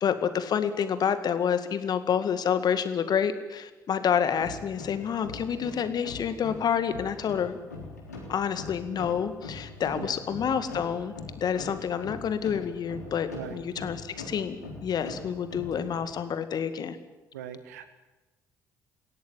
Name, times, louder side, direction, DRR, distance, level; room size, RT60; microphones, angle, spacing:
voice 1, 0.0-7.6 8.3-17.0, left 7 dB, 50° left, 11 dB, 2.0 m, -28 dB
sound 1, 4.3-16.2, left 3 dB, 90° left, 3.8 m, -42 dB
voice 2, 17.3-17.9, right 10 dB, 80° right, 10 dB, 1.7 m, -40 dB
23.0 x 16.5 x 9.3 m, 1.1 s
figure-of-eight pair, 45°, 9 cm